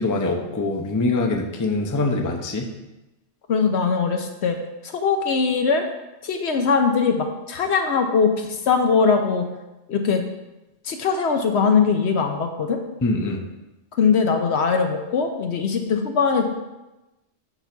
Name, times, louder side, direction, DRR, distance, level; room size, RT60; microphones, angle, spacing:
voice 1, 0.0-2.7 13.0-13.4, left 2 dB, 20° left, 2 dB, 0.5 m, -23 dB
voice 2, 3.5-4.6 4.8-5.8 6.2-9.5 9.9-10.2 10.8-12.8 14.0-16.5, left 5 dB, 60° left, 4 dB, 0.9 m, -21 dB
8.0 x 3.4 x 5.9 m, 1.0 s
omnidirectional pair, 1.3 m